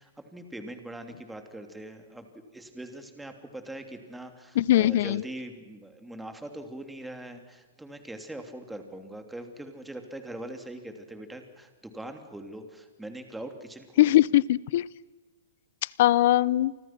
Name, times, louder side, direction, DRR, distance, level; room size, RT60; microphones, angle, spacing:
voice 1, 0.0-14.2, right 1 dB, 5° right, 3.0 m, -42 dB
voice 2, 4.6-5.2 14.0-14.9 16.0-16.7, left 14 dB, 55° left, 0.7 m, -21 dB
30.0 x 25.0 x 6.1 m
hypercardioid pair, 145°, 0 cm